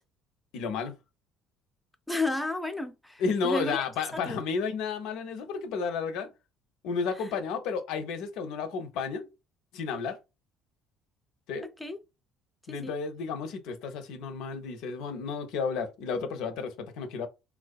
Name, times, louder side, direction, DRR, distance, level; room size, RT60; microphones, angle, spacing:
voice 1, 0.5-0.9 3.2-6.3 6.8-9.3 9.7-10.2 11.5-11.7 12.7-17.3, left 5 dB, 70° left, 0.4 m, -32 dB
voice 2, 2.1-3.8 4.3-4.4 11.8-12.0 12.7-12.9, left 2 dB, 5° left, 0.4 m, -32 dB
2.5 x 2.1 x 2.3 m
hypercardioid pair, 65°, 0 cm